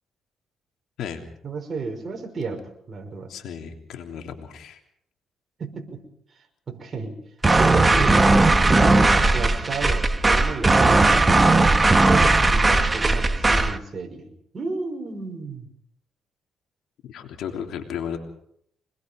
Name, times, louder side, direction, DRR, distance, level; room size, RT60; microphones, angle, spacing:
voice 1, 1.4-3.3 5.6-6.0 6.7-7.2 7.6-8.3 8.7-11.3 11.9-14.3 14.5-15.7, right 4 dB, 40° right, 4 dB, 5.7 m, -32 dB
voice 2, 3.3-4.8 17.1-18.2, left 8 dB, 75° left, 4 dB, 3.3 m, -34 dB
sound 1, 7.4-13.8, right 2 dB, 20° right, 1.4 m, -17 dB
26.0 x 20.5 x 5.3 m, 0.68 s
cardioid pair, 90°, 0 cm